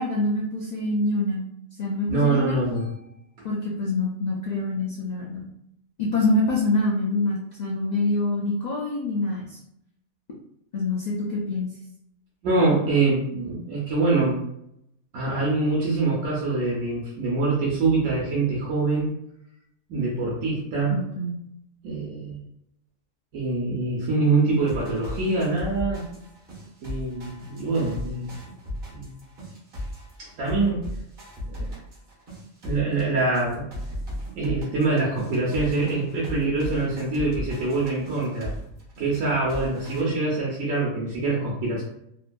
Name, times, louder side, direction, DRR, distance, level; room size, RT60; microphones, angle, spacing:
voice 1, 0.0-1.4 1.8-2.6 3.4-5.4 6.0-9.6 10.7-11.7 20.9-21.4, left 2 dB, 60° left, -4 dB, 0.4 m, -25 dB
voice 2, 2.1-2.9 12.4-14.4 15.1-19.1 19.9-21.0 21.8-22.4 23.3-26.0 26.8-28.3 28.9-29.1 30.2-30.8 31.6-31.7 32.6-33.6 34.3-38.5 39.0-41.8, right 3 dB, 85° right, -6 dB, 1.1 m, -24 dB
sound 1, 24.5-40.0, left 1 dB, 50° right, 1.1 m, -37 dB
2.8 x 2.5 x 2.2 m, 0.78 s
omnidirectional pair, 1.3 m